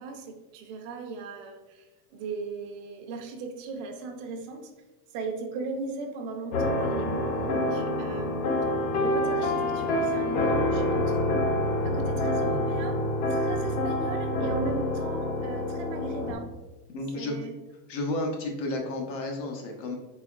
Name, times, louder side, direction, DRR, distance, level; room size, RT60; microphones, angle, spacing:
voice 1, 0.0-4.7 5.1-8.4 9.0-11.2 11.8-13.0 13.3-16.5 17.1-17.5, right 4 dB, 50° right, 3 dB, 0.7 m, -37 dB
sound 1, 6.5-16.3, left 1 dB, 50° left, 0.7 m, -27 dB
voice 2, 16.9-17.4 17.9-19.9, left 2 dB, 90° left, 1 dB, 1.0 m, -32 dB
4.1 x 3.0 x 2.4 m, 1.1 s
supercardioid pair, 130°, 49 cm